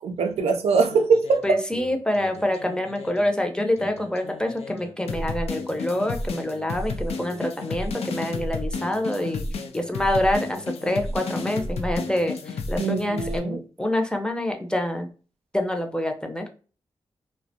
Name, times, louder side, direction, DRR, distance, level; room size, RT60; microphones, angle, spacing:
voice 1, 0.0-1.6 12.8-13.6, right 4 dB, 85° right, 0.4 m, -22 dB
sound 1, 0.7-3.3 3.8-13.4, left 3 dB, 85° left, 0.4 m, -32 dB
voice 2, 1.4-15.1 15.5-16.5, left 1 dB, 10° left, 0.6 m, -26 dB
2.4 x 2.2 x 2.6 m
cardioid pair, 50°, 10 cm